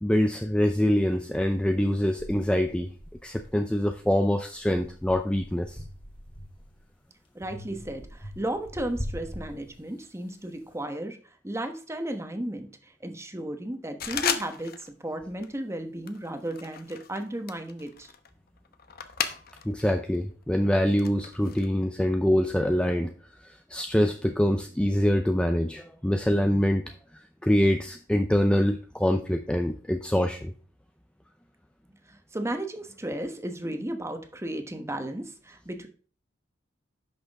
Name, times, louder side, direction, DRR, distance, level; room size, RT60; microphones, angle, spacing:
voice 1, 0.0-2.9 3.2-5.8 19.6-23.1 23.7-26.8 27.4-30.5, equal, 5° left, 5 dB, 0.5 m, -24 dB
sound 1, 1.4-1.5 2.2-4.0 4.5-6.8 7.4-10.2, equal, 25° left, 2.3 m, -42 dB
voice 2, 7.3-11.2 11.4-18.1 32.1-35.9, right 1 dB, 15° right, 6 dB, 1.1 m, -34 dB
sound 2, 14.0-14.9 15.2-15.6 16.1-19.8 20.1-21.7, left 8 dB, 55° left, 0.9 m, -35 dB
10.5 x 6.1 x 3.5 m, 0.40 s
head